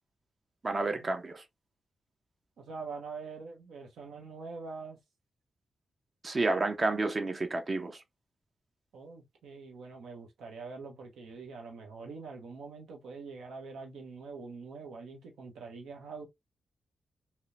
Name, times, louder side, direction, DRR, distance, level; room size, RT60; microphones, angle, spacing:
voice 1, 0.6-1.4 6.2-8.0, right 2 dB, 40° right, 0.6 m, -30 dB
voice 2, 2.6-5.0 8.9-16.3, right 4 dB, 90° right, 0.8 m, -44 dB
2.8 x 2.1 x 2.4 m
cardioid pair, 60°, 0 cm